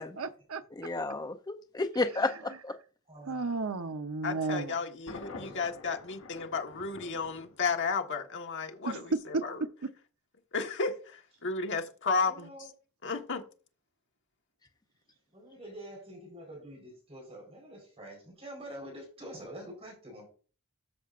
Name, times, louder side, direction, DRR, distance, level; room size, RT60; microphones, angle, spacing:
voice 1, 0.0-0.9 3.3-4.8 8.9-9.9, right 3 dB, 70° right, 0.9 m, -34 dB
voice 2, 0.8-2.8, left 2 dB, 20° left, 0.6 m, -32 dB
voice 3, 3.1-3.4 5.3-5.6 12.2-12.7 15.3-20.3, right 1 dB, 25° right, 4.3 m, -46 dB
voice 4, 4.2-8.9 9.4-9.5 10.5-12.5 13.0-13.4, left 4 dB, 55° left, 1.5 m, -33 dB
Thunder, 5.1-8.1, left 2 dB, 70° left, 4.0 m, -47 dB
13.0 x 7.3 x 2.5 m
head